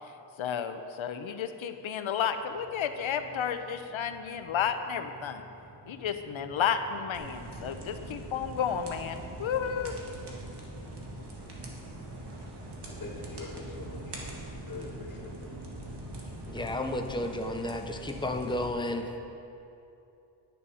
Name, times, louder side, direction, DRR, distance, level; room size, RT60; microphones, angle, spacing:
voice 1, 0.4-5.5 5.9-10.0, left 7 dB, 85° left, 8 dB, 0.8 m, -32 dB
sound 1, 1.9-17.0, equal, 40° right, 2.8 m, -50 dB
sound 2, 7.1-18.7, right 2 dB, 55° right, 1.9 m, -43 dB
voice 2, 13.0-14.2 14.6-15.5, left 3 dB, 45° left, -2 dB, 2.0 m, -43 dB
voice 3, 16.5-19.3, left 1 dB, 10° left, 4 dB, 0.7 m, -32 dB
10.0 x 10.0 x 5.6 m, 2.8 s
wide cardioid pair, 135°, 46 cm